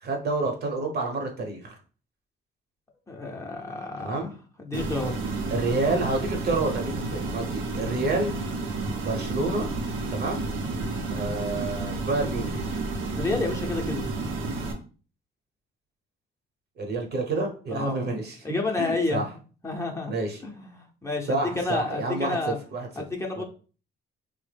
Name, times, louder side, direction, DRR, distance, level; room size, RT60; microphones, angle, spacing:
voice 1, 0.0-1.8 4.0-4.3 5.5-8.3 9.0-9.7 10.1-10.5 11.1-12.6 16.8-18.4 18.8-19.3 20.1-20.4 21.3-23.0 23.3-23.4, right 2 dB, 55° right, 3 dB, 1.0 m, -29 dB
voice 2, 3.1-4.3 4.6-5.2 13.2-14.1 17.7-18.1 18.4-19.2 19.6-20.1 20.4-22.6 23.0-23.4, left 3 dB, 15° left, 0 dB, 0.7 m, -30 dB
sound 1, 4.7-14.7, right 3 dB, 75° right, 0.7 m, -31 dB
3.3 x 2.1 x 3.3 m, 0.38 s
cardioid pair, 90°, 20 cm